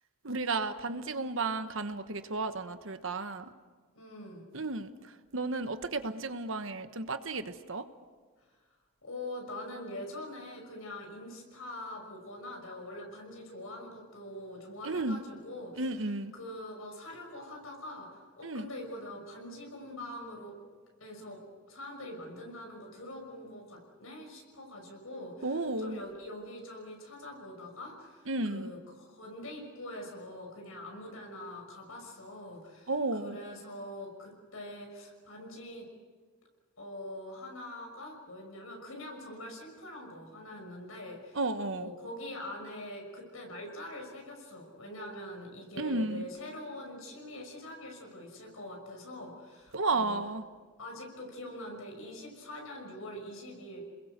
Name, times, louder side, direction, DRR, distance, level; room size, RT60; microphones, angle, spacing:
voice 1, 0.2-3.5 4.5-7.8 14.8-15.2 15.8-16.3 18.4-18.7 25.4-26.0 28.3-28.7 32.9-33.4 41.3-41.9 45.8-46.2 49.7-50.4, right 3 dB, 65° right, 9 dB, 1.3 m, -33 dB
voice 2, 3.9-4.4 9.0-15.9 16.3-20.6 21.0-21.4 21.7-32.9 33.2-35.9 36.8-41.4 41.8-50.2 50.8-53.8, left 1 dB, 75° left, 2 dB, 6.1 m, -44 dB
29.0 x 21.5 x 6.8 m, 1.5 s
head